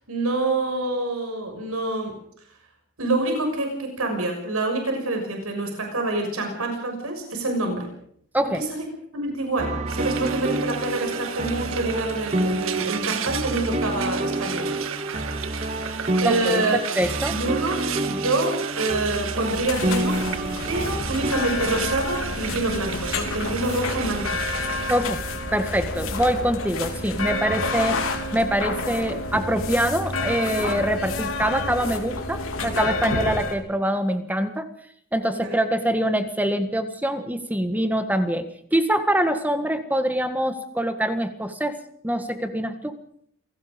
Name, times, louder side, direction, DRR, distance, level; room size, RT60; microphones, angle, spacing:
voice 1, 0.1-2.2 3.0-7.9 8.5-8.7 9.1-14.7 16.2-16.8 17.3-17.8 18.1-20.2 20.7-24.4 33.0-33.1 35.3-35.6, right 2 dB, 90° right, 3 dB, 6.3 m, -26 dB
sound 1, 9.6-21.3, right 1 dB, 30° right, 1.8 m, -28 dB
Frying (food), 9.9-25.0, right 8 dB, 75° right, 1.5 m, -34 dB
voice 2, 16.2-17.4 24.9-25.2 25.5-28.0 28.3-34.7 35.1-38.4 38.7-41.8 42.0-42.9, right 1 dB, 10° right, 8 dB, 1.7 m, -24 dB
sound 2, 19.5-33.6, left 2 dB, 75° left, 3.5 m, -29 dB
28.5 x 18.0 x 5.3 m, 0.66 s
head